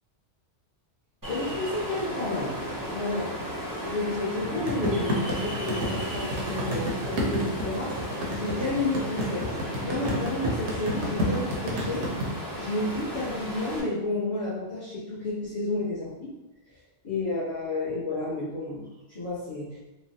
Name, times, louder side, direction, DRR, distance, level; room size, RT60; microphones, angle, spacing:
Ocean, 1.2-13.8, equal, 20° right, 0.7 m, -35 dB
voice 1, 1.3-2.5 2.8-3.3 3.8-9.4 9.8-12.3 12.6-16.3 17.0-19.8, left 2 dB, 30° left, -13 dB, 0.9 m, -31 dB
sound 1, 4.7-12.2, equal, 70° right, 1.0 m, -29 dB
3.2 x 2.2 x 2.7 m, 0.99 s
omnidirectional pair, 1.2 m